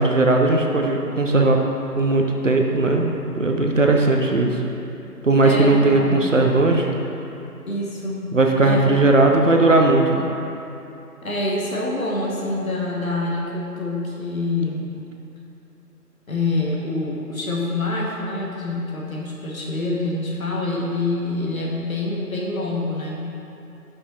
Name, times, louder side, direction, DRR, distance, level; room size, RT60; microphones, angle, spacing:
voice 1, 0.0-1.6 2.0-4.6 5.2-7.0 8.3-10.3, right 2 dB, 55° right, 2 dB, 0.6 m, -18 dB
voice 2, 5.4-6.2 7.7-8.3 8.6-9.0 11.2-15.0 16.3-23.3, left 2 dB, 60° left, -3 dB, 1.2 m, -26 dB
5.6 x 5.3 x 4.1 m, 2.9 s
figure-of-eight pair, 160°, 48 cm